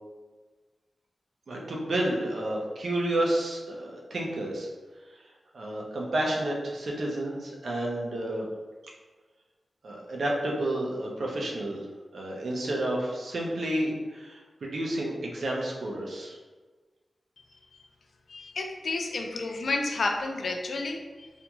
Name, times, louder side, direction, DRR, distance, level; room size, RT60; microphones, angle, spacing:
voice 1, 1.5-4.7 5.1-5.2 5.5-8.5 9.8-11.8 12.1-16.4, right 1 dB, 70° right, -2 dB, 0.5 m, -30 dB
voice 2, 18.3-21.3, left 3 dB, 70° left, 3 dB, 0.3 m, -31 dB
2.5 x 2.2 x 2.9 m, 1.3 s
wide cardioid pair, 115°, 0 cm